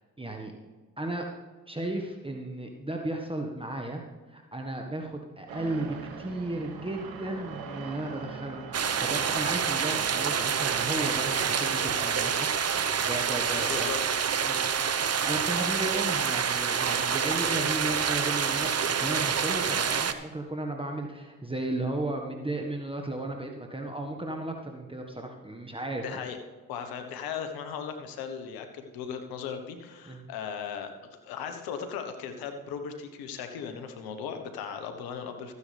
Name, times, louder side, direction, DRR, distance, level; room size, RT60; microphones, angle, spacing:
voice 1, 0.2-0.5 1.0-1.3 1.7-4.0 4.3-13.9 14.4-14.9 15.2-26.2 30.1-30.2, right 1 dB, 15° right, 2 dB, 1.5 m, -35 dB
sound 1, 5.5-12.0, right 5 dB, 85° right, 1.4 m, -42 dB
sound 2, 8.7-20.1, right 7 dB, 45° right, 1.0 m, -27 dB
voice 2, 13.5-14.0 26.0-26.4 26.7-30.9 31.2-35.5, left 7 dB, 90° left, 7 dB, 1.3 m, -37 dB
14.0 x 9.7 x 3.4 m, 1.3 s
supercardioid pair, 50°, 35 cm